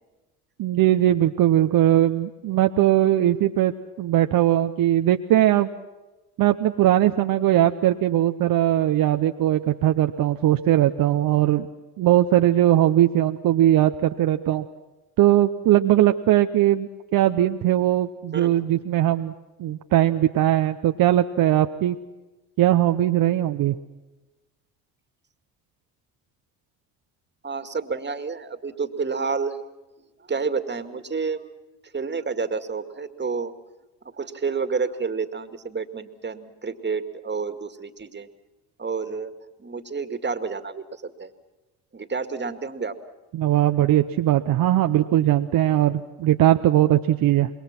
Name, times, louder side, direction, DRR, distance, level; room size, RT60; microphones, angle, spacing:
voice 1, 0.6-3.7 4.0-5.7 6.4-11.7 12.0-14.6 15.2-19.3 19.6-22.0 22.6-23.8 43.3-47.5, right 13 dB, 60° right, 6 dB, 0.9 m, -20 dB
voice 2, 27.4-29.6 30.3-31.5 31.9-33.5 34.1-38.3 38.8-39.3 39.6-41.3 41.9-42.9, right 5 dB, 25° right, 10 dB, 2.2 m, -29 dB
27.0 x 21.5 x 6.0 m, 1.1 s
hypercardioid pair, 65°, 39 cm